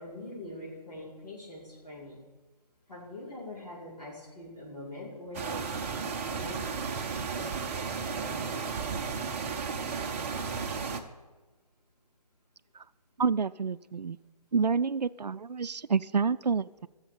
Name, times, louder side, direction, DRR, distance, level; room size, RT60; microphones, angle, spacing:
voice 1, 0.0-2.2 2.9-6.6 7.3-7.4 7.7-8.9, left 1 dB, 80° left, -8 dB, 5.5 m, -44 dB
sound 1, 5.3-11.0, right 5 dB, 20° right, 0.7 m, -34 dB
voice 2, 13.2-14.2 14.5-16.9, right 5 dB, 85° right, 15 dB, 0.5 m, -28 dB
14.5 x 7.3 x 6.8 m, 1.2 s
figure-of-eight pair, 145°, 21 cm